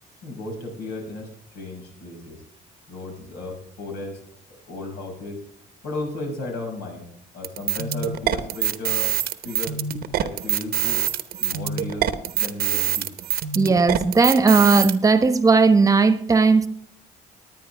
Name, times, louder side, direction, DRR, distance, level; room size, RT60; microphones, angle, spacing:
voice 1, 0.2-2.4 2.9-4.2 4.7-5.4 5.8-7.1 7.3-9.1 9.4-9.7 10.2-11.0 11.4-13.1, left 2 dB, 80° left, 0 dB, 5.7 m, -34 dB
sound 1, 7.4-14.9, right 9 dB, 65° right, 1.0 m, -25 dB
voice 2, 13.5-16.7, right 4 dB, 20° right, 11 dB, 1.1 m, -17 dB
20.0 x 9.4 x 3.4 m, 0.69 s
cardioid pair, 110°, 17 cm